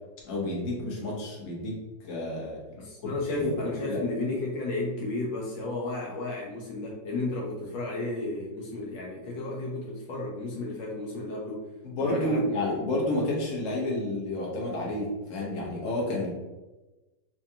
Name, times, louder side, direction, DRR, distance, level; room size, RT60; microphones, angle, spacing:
voice 1, 0.2-1.8 2.0-2.6 3.0-3.5 3.9-4.0 11.8-16.3, left 1 dB, 50° left, -4 dB, 1.2 m, -30 dB
voice 2, 2.7-11.7 12.0-12.4, left 2 dB, 75° left, -2 dB, 1.3 m, -33 dB
4.6 x 2.3 x 2.7 m, 1.1 s
omnidirectional pair, 2.1 m